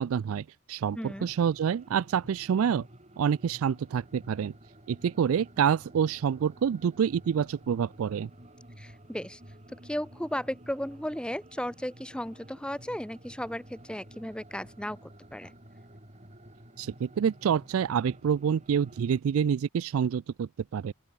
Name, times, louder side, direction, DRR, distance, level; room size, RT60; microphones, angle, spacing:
voice 1, 0.0-2.9 3.2-4.5 4.9-8.3 16.8-20.9, right 7 dB, 70° right, 0.3 m, -27 dB
voice 2, 0.9-1.3 8.8-9.4 9.7-15.0 15.3-15.5, equal, 5° left, 2.7 m, -35 dB
sound 1, 1.1-19.2, right 1 dB, 30° right, 6.4 m, -52 dB
open air
head